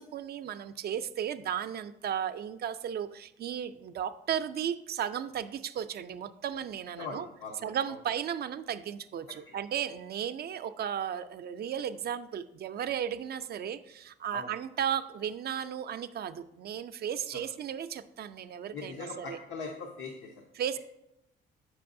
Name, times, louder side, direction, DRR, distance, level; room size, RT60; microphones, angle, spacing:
voice 1, 0.0-7.3 7.6-19.4 20.6-20.8, right 9 dB, 55° right, 11 dB, 0.4 m, -35 dB
voice 2, 7.0-8.0 9.3-9.5 14.3-14.5 17.3-17.4 18.7-20.4, left 4 dB, 85° left, 0 dB, 0.8 m, -41 dB
7.6 x 6.0 x 2.6 m, 0.84 s
cardioid pair, 90°, 20 cm